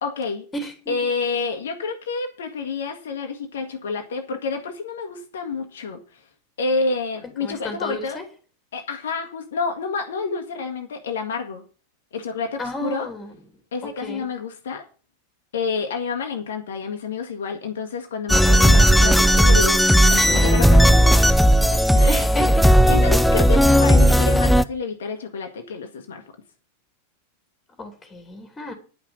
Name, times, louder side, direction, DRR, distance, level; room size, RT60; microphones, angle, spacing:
voice 1, 0.0-0.4 0.9-6.2 6.6-8.2 8.7-11.6 12.1-13.1 13.7-14.8 15.5-21.4 21.7-22.2 22.9-26.2, left 4 dB, 60° left, 1.5 m, -29 dB
voice 2, 0.5-0.9 7.4-8.2 12.6-13.3 13.8-14.3 22.1-22.7 27.8-28.7, left 1 dB, 15° left, 3.1 m, -32 dB
sound 1, 18.3-24.6, equal, ahead, 0.5 m, -15 dB
10.5 x 6.0 x 7.9 m
figure-of-eight pair, 90°, 0 cm